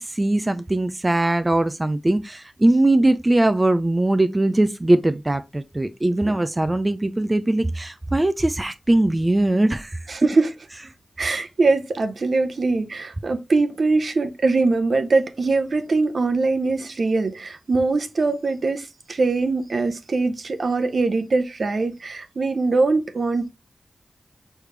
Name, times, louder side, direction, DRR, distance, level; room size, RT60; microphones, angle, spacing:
voice 1, 0.0-10.0, right 1 dB, 25° right, 0.5 m, -20 dB
voice 2, 10.1-10.5 11.2-23.5, right 3 dB, 65° right, 0.8 m, -22 dB
4.7 x 3.4 x 3.2 m
cardioid pair, 45°, 0 cm